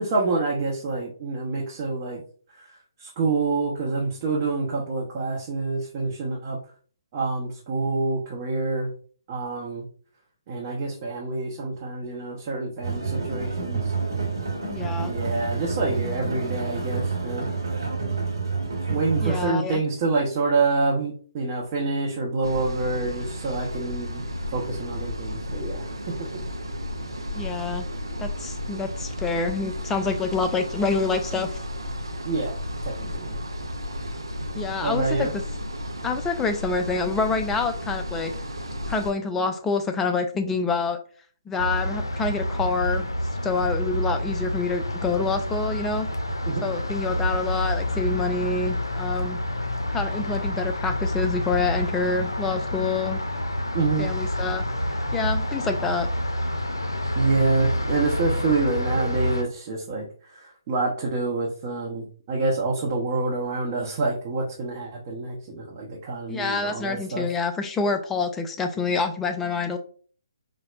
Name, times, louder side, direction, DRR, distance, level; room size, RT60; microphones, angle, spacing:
voice 1, 0.0-2.2 2.6-6.6 7.1-8.9 9.3-9.9 10.5-13.9 15.0-17.5 18.9-24.2 24.5-25.9 26.2-26.3 32.2-32.6 32.8-33.4 34.8-35.3 46.5-46.7 53.7-54.1 57.1-67.3, right 3 dB, 35° right, -4 dB, 0.7 m, -27 dB
sound 1, 12.8-19.5, right 4 dB, 70° right, 1.1 m, -28 dB
voice 2, 14.7-15.1 19.2-19.8 27.3-27.8 28.2-31.6 34.6-35.4 36.0-38.3 38.9-41.0 41.5-43.1 43.4-46.1 46.6-49.4 49.9-53.2 54.0-54.6 55.1-56.1 66.3-69.8, left 4 dB, 10° left, 6 dB, 0.3 m, -27 dB
sound 2, 22.4-39.1, left 1 dB, 85° right, 0.5 m, -33 dB
sound 3, 41.6-59.4, left 1 dB, 85° left, 0.5 m, -28 dB
4.2 x 2.0 x 2.3 m, 0.44 s
figure-of-eight pair, 135°, 2 cm